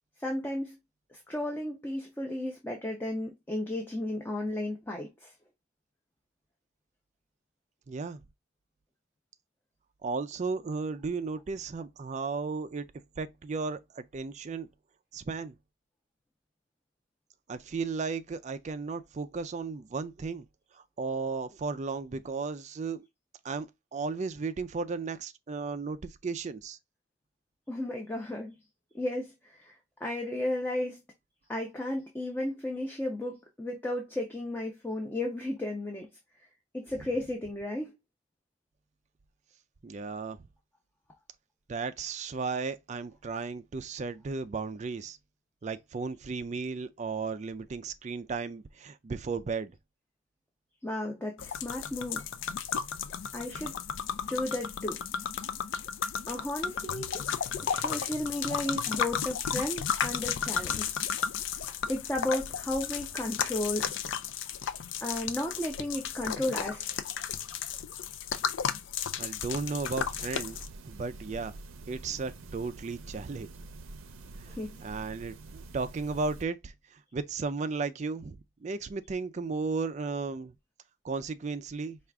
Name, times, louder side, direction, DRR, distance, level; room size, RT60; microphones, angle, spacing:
voice 1, 0.2-0.8 1.1-5.3 27.7-28.5 28.9-29.7 30.0-31.0 31.5-36.1 36.8-37.9 50.8-52.2 53.3-53.7 54.3-55.0 56.3-57.2 57.6-61.0 61.9-63.9 65.0-67.0 74.6-74.7, left 1 dB, 10° left, 0.6 m, -34 dB
voice 2, 7.9-8.2 10.0-12.9 13.2-14.7 15.1-15.5 17.5-20.5 20.7-23.1 23.4-26.8 39.8-40.4 41.7-45.2 45.6-49.8 69.2-70.6 70.9-71.5 71.9-73.5 74.4-74.6 74.8-80.5 81.0-82.0, right 4 dB, 35° right, 0.3 m, -35 dB
sound 1, 51.4-70.7, left 7 dB, 65° left, 0.4 m, -34 dB
sound 2, 69.5-76.4, right 2 dB, 80° right, 0.6 m, -47 dB
4.7 x 2.4 x 3.3 m
head